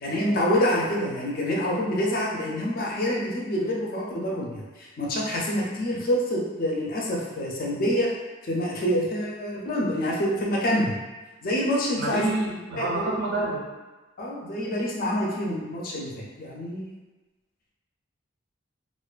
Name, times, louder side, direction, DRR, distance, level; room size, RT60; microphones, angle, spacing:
voice 1, 0.0-8.1 8.4-10.9 11.4-12.3 12.8-13.1 14.2-16.9, equal, 45° left, -3 dB, 0.4 m, -27 dB
voice 2, 11.9-13.6, right 2 dB, 55° right, -3 dB, 0.5 m, -28 dB
2.4 x 2.3 x 2.2 m, 1.2 s
head